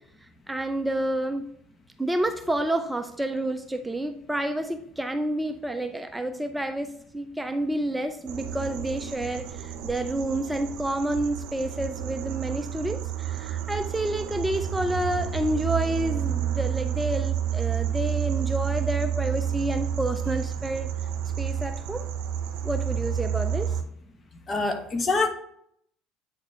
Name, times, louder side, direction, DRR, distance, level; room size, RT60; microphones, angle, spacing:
voice 1, 0.2-1.5 2.0-20.9 21.4-22.1 22.6-23.8, right 1 dB, 10° right, 7 dB, 0.5 m, -29 dB
sound 1, 8.3-23.8, right 9 dB, 70° right, 0.7 m, -30 dB
voice 2, 24.5-25.3, left 3 dB, 35° left, 7 dB, 1.1 m, -25 dB
8.6 x 4.1 x 3.2 m, 0.68 s
hypercardioid pair, 75°, 0 cm